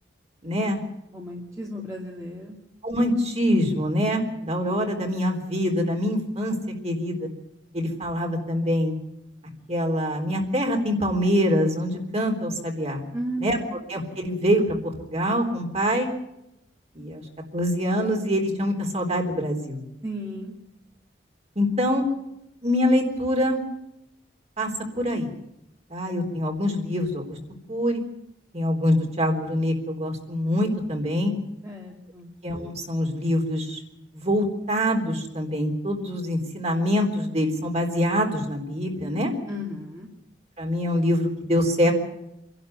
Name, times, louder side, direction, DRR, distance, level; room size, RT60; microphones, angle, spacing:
voice 1, 0.4-0.8 2.8-6.6 6.8-7.3 7.7-9.0 9.7-13.0 13.4-13.6 13.9-16.1 17.0-17.2 17.5-19.8 21.6-22.0 22.6-23.6 24.6-24.7 25.0-25.3 25.9-27.4 27.7-28.0 28.5-31.3 32.4-33.8 34.1-39.3 40.6-41.9, equal, 35° right, 2 dB, 3.9 m, -24 dB
voice 2, 1.1-2.6 13.1-13.8 20.0-20.6 31.6-32.3 39.5-40.1, equal, 20° right, -2 dB, 2.5 m, -34 dB
26.0 x 12.0 x 9.4 m, 0.86 s
head